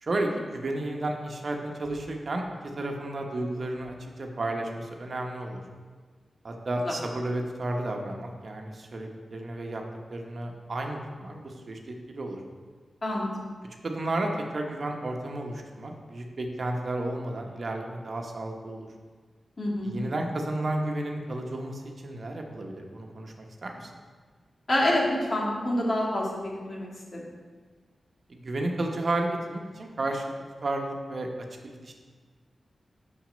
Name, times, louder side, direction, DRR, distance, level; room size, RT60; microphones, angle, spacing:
voice 1, 0.0-2.4 2.8-5.6 6.4-9.8 10.1-12.4 13.8-18.9 19.8-23.9 28.3-30.2 30.6-31.3 31.6-31.9, right 2 dB, 60° right, 2 dB, 1.0 m, -32 dB
voice 2, 19.6-20.0 24.7-25.0 25.3-27.2, left 1 dB, 50° left, -4 dB, 2.2 m, -27 dB
6.4 x 6.0 x 5.1 m, 1.5 s
cardioid pair, 40°, 0 cm